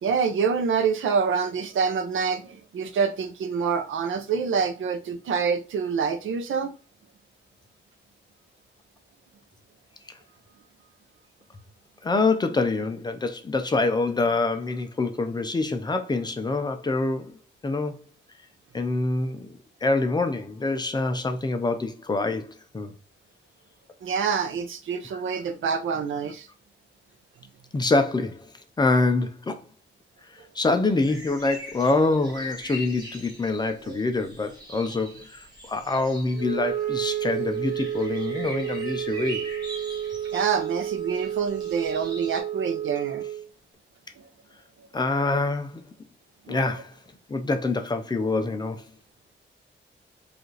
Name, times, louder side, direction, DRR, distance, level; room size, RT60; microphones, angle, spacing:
voice 1, 0.0-6.7 24.0-26.5 33.9-34.0 40.3-43.2 44.2-44.3 46.5-46.6, right 6 dB, 85° right, 0.6 m, -26 dB
voice 2, 12.0-17.4 17.6-18.0 18.7-22.9 27.7-28.5 28.8-29.6 30.5-39.5 44.9-45.8 46.5-46.9 47.3-48.8, left 3 dB, 20° left, 0.5 m, -25 dB
sound 1, 30.8-42.4, equal, 20° right, 1.3 m, -42 dB
Wind instrument woodwind instrument, 36.3-43.5, right 11 dB, 50° right, 0.9 m, -31 dB
4.9 x 2.5 x 3.1 m
wide cardioid pair, 175°, 20 cm